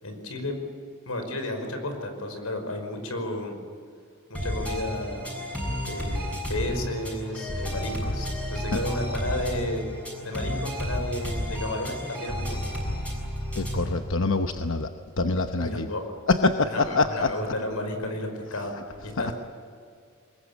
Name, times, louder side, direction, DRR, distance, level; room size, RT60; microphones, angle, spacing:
voice 1, 0.0-0.5 1.0-3.6 4.3-5.4 5.8-9.8 10.2-12.6 15.6-16.0 16.6-19.3, left 1 dB, 90° left, 5 dB, 5.2 m, -32 dB
sound 1, 4.3-13.9, equal, 5° left, 7.0 m, -31 dB
voice 2, 13.6-14.9 15.2-15.9 16.3-17.3, left 3 dB, 65° left, 6 dB, 1.0 m, -24 dB
24.0 x 21.5 x 8.5 m, 2.2 s
head